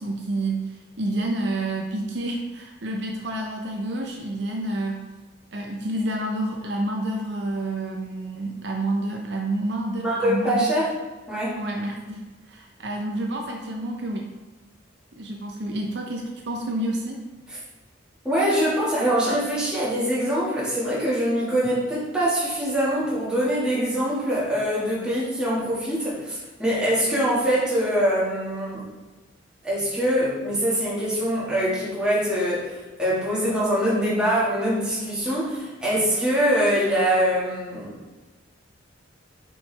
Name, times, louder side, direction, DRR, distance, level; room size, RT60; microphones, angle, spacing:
voice 1, 0.0-5.1 5.5-10.7 11.6-14.3 15.2-17.2 27.1-27.2, right 1 dB, 60° right, 1 dB, 0.6 m, -29 dB
voice 2, 10.0-10.9 11.3-11.6 18.2-28.9 29.6-38.0, equal, 5° right, -9 dB, 1.9 m, -23 dB
6.1 x 4.7 x 3.4 m, 1.2 s
head